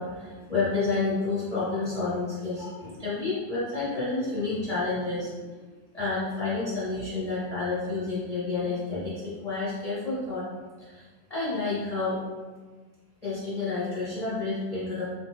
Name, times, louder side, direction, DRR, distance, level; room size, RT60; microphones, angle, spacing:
voice 1, 0.0-5.6 5.9-10.4 10.8-11.0 11.3-12.2 13.2-15.1, left 3 dB, 25° left, -10 dB, 0.8 m, -30 dB
3.1 x 2.7 x 3.3 m, 1.3 s
omnidirectional pair, 2.1 m